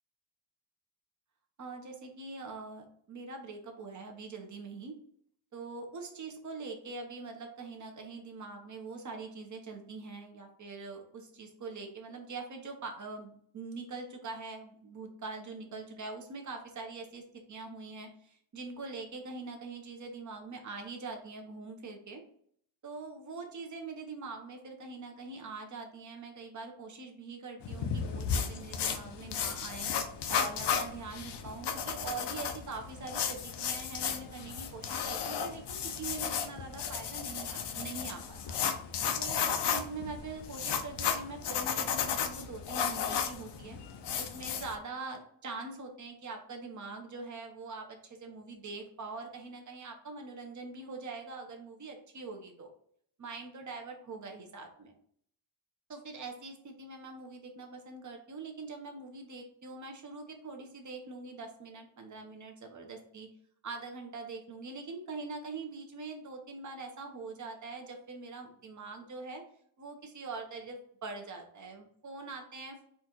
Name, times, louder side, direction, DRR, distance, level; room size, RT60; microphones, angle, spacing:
voice 1, 1.6-4.9 5.5-17.2 17.5-22.2 22.8-29.9 30.3-38.6 39.1-43.8 44.2-52.7 53.2-54.9 55.9-63.3 63.6-69.4 69.8-72.9, right 3 dB, 35° right, 3 dB, 1.0 m, -43 dB
sketchbook-drawing-pencil-sounds, 27.6-44.7, left 7 dB, 55° left, 0.7 m, -34 dB
4.3 x 2.5 x 4.3 m, 0.62 s
cardioid pair, 115°, 49 cm